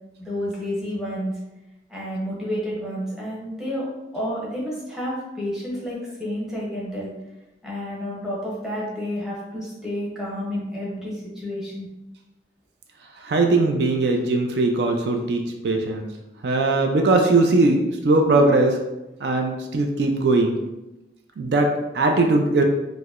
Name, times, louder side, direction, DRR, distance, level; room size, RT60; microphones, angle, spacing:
voice 1, 0.2-1.4 1.9-7.1 7.6-11.9, equal, 5° right, -6 dB, 0.8 m, -30 dB
voice 2, 13.2-16.1 16.4-18.8 19.2-20.6 21.4-22.6, right 2 dB, 70° right, 4 dB, 0.4 m, -20 dB
4.5 x 2.0 x 2.4 m, 0.98 s
head